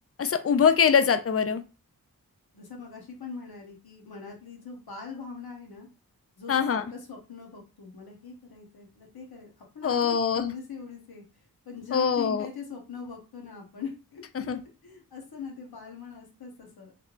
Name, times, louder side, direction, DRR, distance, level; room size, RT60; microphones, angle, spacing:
voice 1, 0.2-1.6 6.5-6.8 9.8-10.5 11.9-12.5 14.5-14.6, left 7 dB, 40° left, 9 dB, 0.4 m, -23 dB
voice 2, 2.5-5.9 6.4-14.2 14.8-16.9, left 5 dB, 80° left, 1 dB, 1.0 m, -42 dB
3.3 x 3.1 x 2.5 m, 0.32 s
wide cardioid pair, 65°, 36 cm